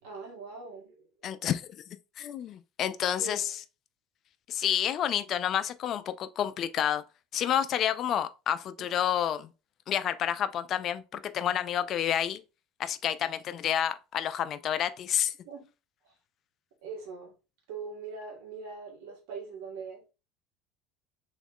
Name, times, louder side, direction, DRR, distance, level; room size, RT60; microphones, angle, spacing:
voice 1, 0.0-1.4 3.2-3.5 15.4-15.6 16.0-16.1 16.8-17.3 17.7-20.0, right 4 dB, 80° right, 2.0 m, -42 dB
voice 2, 1.2-1.6 2.2-3.5 4.5-7.0 7.3-9.5 9.9-12.4 12.8-15.3, left 10 dB, 45° left, 0.4 m, -29 dB
3.6 x 3.1 x 3.5 m
supercardioid pair, 110°, 0 cm